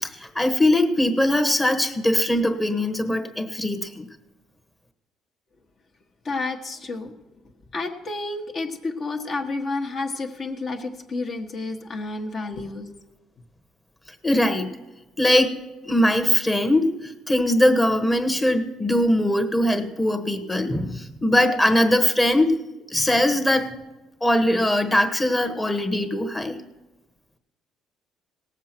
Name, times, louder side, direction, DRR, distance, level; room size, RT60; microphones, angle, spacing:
voice 1, 0.0-4.0 14.2-14.7 15.2-15.6 15.8-22.5 22.9-23.7 24.2-26.6, left 1 dB, 10° left, 6 dB, 1.2 m, -21 dB
voice 2, 6.2-7.1 7.7-12.8, left 3 dB, 40° left, 3 dB, 1.3 m, -30 dB
18.0 x 7.4 x 6.0 m, 1.1 s
cardioid pair, 120°, 0 cm